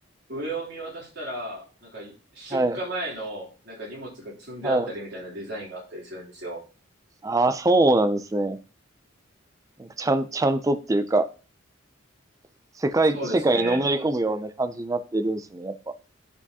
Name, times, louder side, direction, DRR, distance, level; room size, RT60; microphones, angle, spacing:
voice 1, 0.3-6.6 13.1-13.8, right 1 dB, 55° right, -4 dB, 3.2 m, -35 dB
voice 2, 7.2-8.6 9.8-11.3 12.8-15.7, right 2 dB, 15° right, 11 dB, 0.3 m, -23 dB
10.0 x 4.7 x 2.8 m, 0.36 s
head